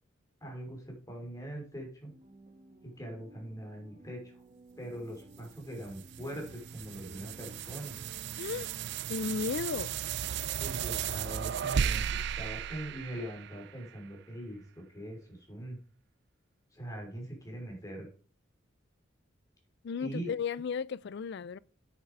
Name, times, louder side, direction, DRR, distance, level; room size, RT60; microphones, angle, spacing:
voice 1, 0.4-2.1 2.8-4.4 4.8-8.0 10.6-15.8 16.7-18.1 20.0-20.3, right 1 dB, 20° left, 3.8 m, -42 dB
sound 1, 2.0-9.3, right 2 dB, 35° right, 1.7 m, -56 dB
sound 2, 5.3-13.9, right 8 dB, 60° right, 0.4 m, -35 dB
voice 2, 8.4-8.7 9.1-9.9 19.8-21.6, left 5 dB, 60° left, 0.4 m, -34 dB
9.0 x 7.4 x 4.7 m
head